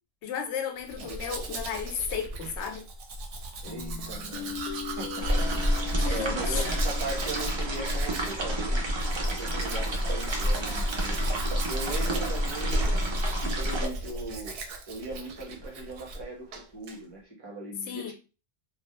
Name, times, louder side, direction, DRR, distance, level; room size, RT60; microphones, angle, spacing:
voice 1, 0.2-2.8 6.0-6.8 17.9-18.1, left 7 dB, 90° left, 0.9 m, -34 dB
Domestic sounds home sounds, 0.8-16.2 16.5-17.0, right 2 dB, 65° right, 0.7 m, -37 dB
voice 2, 3.6-8.9 9.3-11.2 11.7-12.9 13.4-18.1, right 2 dB, 25° right, 0.8 m, -39 dB
Guitar, 3.7-8.7, left 7 dB, 55° left, 0.5 m, -41 dB
sound 1, 5.2-13.9, equal, 50° right, 0.3 m, -28 dB
2.2 x 2.0 x 2.9 m
omnidirectional pair, 1.1 m